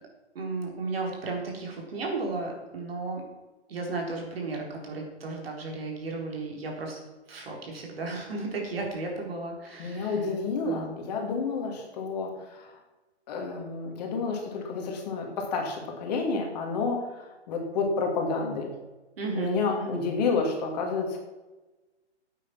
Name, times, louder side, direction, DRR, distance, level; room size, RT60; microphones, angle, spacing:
voice 1, 0.3-3.2 3.7-7.0 7.3-10.2 10.6-11.0 19.2-20.0, right 3 dB, 60° right, 1 dB, 4.1 m, -34 dB
voice 2, 9.8-12.7 13.3-18.7 19.3-21.2, left 4 dB, 35° left, 2 dB, 2.8 m, -30 dB
12.0 x 8.7 x 5.8 m, 1.1 s
figure-of-eight pair, 140°, 34 cm